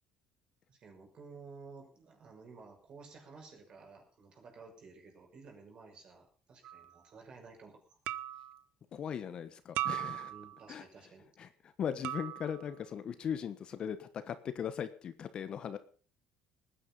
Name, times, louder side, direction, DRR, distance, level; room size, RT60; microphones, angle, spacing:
voice 1, 0.7-8.0 10.2-11.3, right 4 dB, 40° right, 2 dB, 5.9 m, -53 dB
sound 1, 6.6-6.9 8.1-8.6 9.8-10.6 12.0-12.7, right 14 dB, 70° right, 0.8 m, -38 dB
voice 2, 8.9-10.3 10.7-10.8 11.4-15.8, left 8 dB, 40° left, 11 dB, 1.2 m, -39 dB
20.0 x 9.9 x 5.6 m, 0.40 s
cardioid pair, 140°, 2 cm